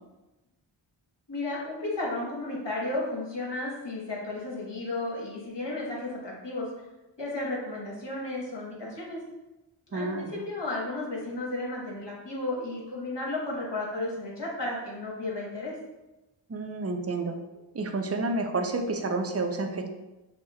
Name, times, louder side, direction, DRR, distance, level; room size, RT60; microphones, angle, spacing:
voice 1, 1.3-6.7 7.2-9.2 9.9-15.7, left 2 dB, 55° left, -4 dB, 1.3 m, -33 dB
voice 2, 9.9-10.3 16.5-17.4 17.7-19.9, right 3 dB, 30° right, 4 dB, 0.4 m, -30 dB
6.0 x 2.1 x 2.3 m, 1.0 s
wide cardioid pair, 50°, 49 cm